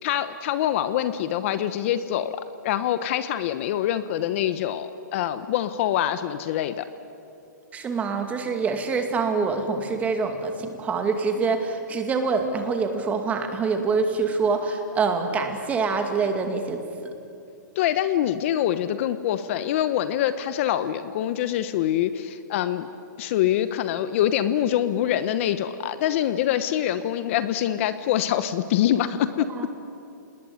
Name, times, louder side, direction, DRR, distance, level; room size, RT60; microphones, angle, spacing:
voice 1, 0.0-6.9 17.7-22.9 23.2-29.5, left 11 dB, 45° left, 12 dB, 1.0 m, -25 dB
voice 2, 7.7-16.8 29.6-29.7, right 4 dB, 15° right, 5 dB, 2.4 m, -25 dB
28.0 x 20.0 x 9.7 m, 2.7 s
hypercardioid pair, 150°, 10 cm